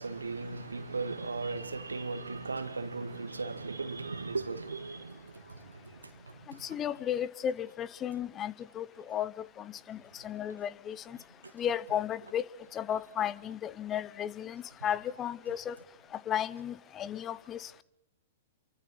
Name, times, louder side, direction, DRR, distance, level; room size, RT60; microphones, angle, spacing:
voice 1, 0.0-5.6, right 3 dB, 80° right, 1.9 m, -37 dB
voice 2, 6.5-11.2 11.5-12.5 12.7-15.8 16.1-17.8, left 9 dB, 25° left, 0.8 m, -34 dB
28.0 x 24.5 x 4.0 m
figure-of-eight pair, 105°, 0 cm